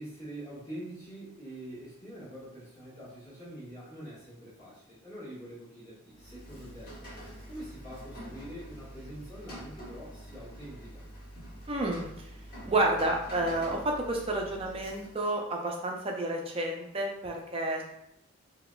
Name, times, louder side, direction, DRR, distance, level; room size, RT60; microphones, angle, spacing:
voice 1, 0.0-7.0 7.5-11.1, right 1 dB, 15° left, -9 dB, 1.2 m, -45 dB
Rain, 6.1-15.3, equal, 45° left, 1.2 m, -46 dB
voice 2, 11.7-12.3 12.7-17.8, right 2 dB, 25° right, 1 dB, 0.5 m, -30 dB
3.8 x 2.8 x 2.3 m, 0.77 s
head